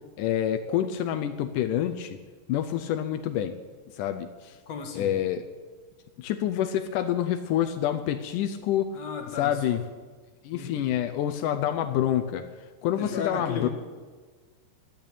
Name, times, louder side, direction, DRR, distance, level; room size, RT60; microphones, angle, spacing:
voice 1, 0.2-2.2 2.5-3.6 3.9-4.6 5.0-5.4 6.2-8.9 9.4-9.8 10.4-12.4 12.8-13.7, left 11 dB, 85° left, 7 dB, 1.8 m, -27 dB
voice 2, 4.7-5.1 8.9-9.8 10.5-10.9 13.0-13.7, left 6 dB, 55° left, 3 dB, 2.1 m, -35 dB
11.0 x 10.0 x 8.9 m, 1.4 s
omnidirectional pair, 4.5 m